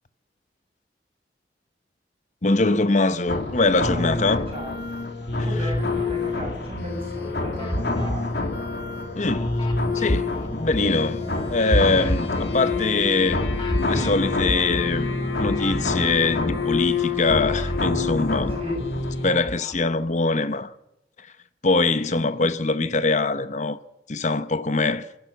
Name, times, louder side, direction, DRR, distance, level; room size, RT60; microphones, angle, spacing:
voice 1, 2.4-4.4 9.1-9.6 9.9-11.2 11.5-13.4 13.9-15.1 15.4-18.6 19.2-20.7 21.2-21.3 21.6-23.8 24.1-25.1, left 3 dB, 45° left, 0.9 m, -23 dB
sound 1, 3.3-19.3, left 3 dB, 70° left, 3.2 m, -27 dB
voice 2, 3.9-4.8 5.3-8.3 18.6-18.8 19.1-19.4 21.8-22.5, equal, 35° right, 6.8 m, -36 dB
sound 2, 4.1-4.8 5.2-6.8 7.2-16.9 17.2-19.8, equal, 30° left, 2.1 m, -32 dB
27.5 x 11.5 x 8.2 m
head